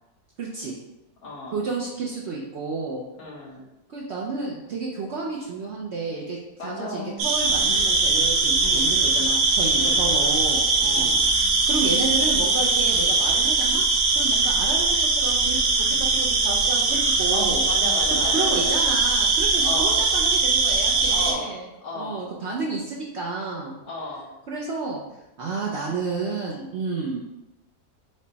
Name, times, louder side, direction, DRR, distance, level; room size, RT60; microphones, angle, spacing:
voice 1, 0.4-0.8 1.5-3.1 3.9-13.9 14.1-17.6 18.1-21.7 21.9-23.8 24.5-25.0 25.4-27.2, right 3 dB, 65° right, -3 dB, 0.7 m, -31 dB
voice 2, 1.2-1.7 3.2-3.6 6.6-7.3 7.6-8.0 8.6-8.9 9.7-10.1 10.8-11.3 17.3-18.8 19.6-20.0 21.1-21.5 21.8-22.2 23.8-24.3, left 2 dB, 70° left, -3 dB, 1.5 m, -34 dB
sound 1, 7.2-21.3, right 3 dB, 80° right, 1.1 m, -21 dB
5.2 x 2.1 x 3.9 m, 0.97 s
omnidirectional pair, 1.6 m